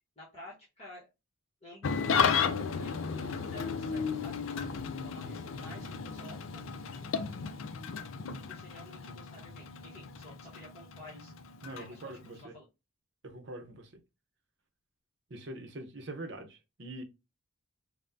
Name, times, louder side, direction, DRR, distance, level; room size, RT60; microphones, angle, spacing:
voice 1, 0.2-1.1 1.6-4.4 5.0-6.6 6.9-7.5 8.1-11.3 11.7-12.7, left 1 dB, 30° left, 1.1 m, -51 dB
Engine starting / Idling, 1.8-12.4, left 6 dB, 70° left, 0.4 m, -34 dB
voice 2, 11.6-12.5 13.2-13.9 15.3-17.0, right 1 dB, 55° right, 0.7 m, -43 dB
5.3 x 2.1 x 2.6 m
head